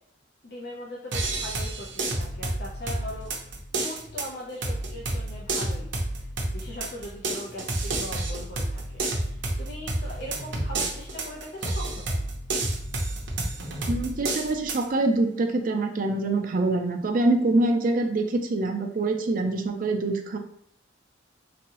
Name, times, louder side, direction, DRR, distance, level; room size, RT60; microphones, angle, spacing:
voice 1, 0.4-12.2, left 1 dB, 60° left, -4 dB, 0.7 m, -40 dB
sound 1, 1.1-14.8, right 2 dB, 75° right, 0.8 m, -30 dB
voice 2, 13.9-20.4, right 2 dB, 45° right, 4 dB, 0.4 m, -25 dB
3.5 x 3.0 x 2.9 m, 0.69 s
head